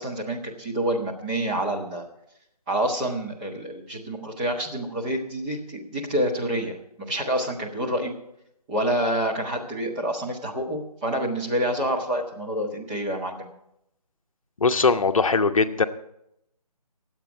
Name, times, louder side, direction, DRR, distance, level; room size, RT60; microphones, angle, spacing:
voice 1, 0.0-2.0 2.7-6.7 7.1-8.1 8.7-13.5, right 1 dB, 15° right, -2 dB, 1.5 m, -27 dB
voice 2, 14.6-15.8, left 4 dB, 55° left, 9 dB, 0.9 m, -20 dB
21.5 x 8.0 x 4.7 m, 0.79 s
figure-of-eight pair, 160°, 21 cm